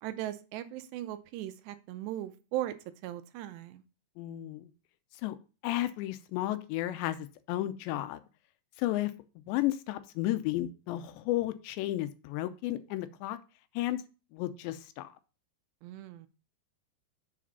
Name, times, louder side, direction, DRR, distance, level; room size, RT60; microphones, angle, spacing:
voice 1, 0.0-2.8 3.0-3.8 15.8-16.3, right 13 dB, 85° right, 10 dB, 2.8 m, -38 dB
voice 2, 4.2-4.7 5.2-5.4 5.6-8.2 8.8-13.4 13.8-14.0 14.3-15.1, left 15 dB, 90° left, 11 dB, 2.9 m, -33 dB
6.9 x 5.0 x 5.4 m, 0.33 s
omnidirectional pair, 5.0 m